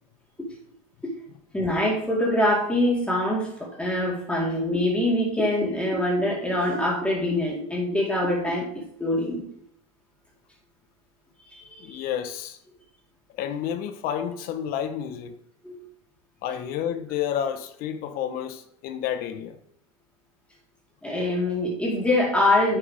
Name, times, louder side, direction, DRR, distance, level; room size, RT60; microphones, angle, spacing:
voice 1, 1.5-9.5 11.5-12.0 15.6-15.8 21.0-22.8, left 1 dB, 5° left, 4.4 m, -24 dB
voice 2, 11.8-12.6 13.4-15.3 16.4-19.6, left 9 dB, 50° left, 1.4 m, -30 dB
9.9 x 8.9 x 3.7 m
supercardioid pair, 125°, 19 cm